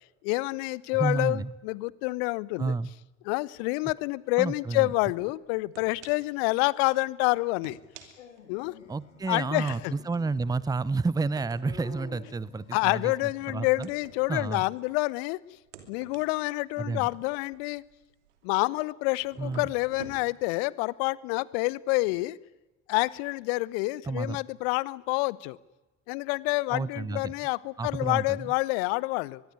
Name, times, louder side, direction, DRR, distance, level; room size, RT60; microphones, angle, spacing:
voice 1, 0.2-2.7 3.3-7.8 8.5-8.7 9.3-9.9 12.7-15.4 15.9-17.8 18.4-22.4 22.9-25.6 26.1-29.4, left 23 dB, 60° left, 22 dB, 0.9 m, -28 dB
voice 2, 0.9-1.5 2.6-2.9 4.4-4.9 8.9-13.1 13.5-13.9 14.3-14.6 16.8-17.1 19.4-19.7 24.0-24.4 26.7-27.3 27.8-28.5, right 3 dB, 10° right, 21 dB, 0.8 m, -30 dB
sound 1, 5.2-5.3 5.7-6.4 6.7-6.9 7.5-9.0 9.7-15.2 15.6-18.7 19.2-20.2, right 7 dB, 70° right, 3.0 m, -51 dB
Dog, 8.2-13.3, left 5 dB, 75° left, 3.0 m, -50 dB
23.0 x 22.0 x 9.6 m, 1.0 s
figure-of-eight pair, 60°, 36 cm